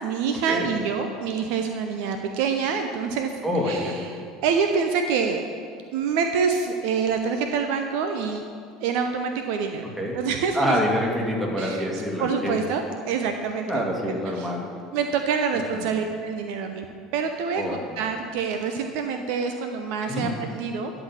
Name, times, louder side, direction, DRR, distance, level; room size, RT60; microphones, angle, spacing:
voice 1, 0.0-3.4 3.6-5.4 5.9-8.4 8.8-9.8 10.1-10.7 11.6-11.9 12.2-14.5 14.9-20.9, right 6 dB, 60° right, 5 dB, 0.6 m, -26 dB
voice 2, 3.4-4.1 10.0-10.1 10.5-12.6 13.7-14.6 15.5-15.8 17.6-17.7 20.1-20.3, equal, 10° right, -1 dB, 2.0 m, -26 dB
11.0 x 4.0 x 7.5 m, 2.1 s
figure-of-eight pair, 70°, 0 cm